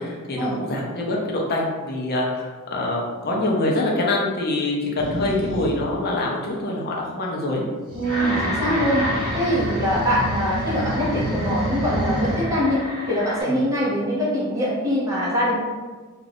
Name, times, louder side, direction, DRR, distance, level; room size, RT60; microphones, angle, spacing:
voice 1, 0.0-7.6 13.4-13.6, left 2 dB, 45° left, -1 dB, 0.6 m, -25 dB
sound 1, 5.0-5.8 7.9-12.5, right 1 dB, 75° right, 0.8 m, -29 dB
voice 2, 7.9-9.1 9.3-15.6, equal, 15° right, -8 dB, 0.8 m, -23 dB
sound 2, 8.0-13.4, equal, 50° right, 1.3 m, -31 dB
2.4 x 2.3 x 3.4 m, 1.4 s
head